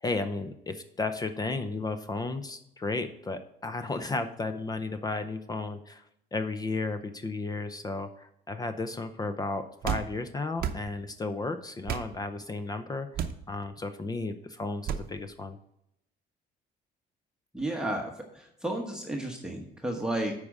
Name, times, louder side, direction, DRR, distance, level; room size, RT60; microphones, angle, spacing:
voice 1, 0.0-6.0 6.3-15.6, left 3 dB, 20° left, 9 dB, 0.6 m, -34 dB
sound 1, 9.8-10.1 10.6-10.8 11.9-12.1 13.1-13.4 14.9-15.1, right 8 dB, 60° right, 0.7 m, -31 dB
voice 2, 17.5-20.3, right 1 dB, 5° right, 0 dB, 1.1 m, -32 dB
8.4 x 4.9 x 5.3 m, 0.79 s
cardioid pair, 110°, 17 cm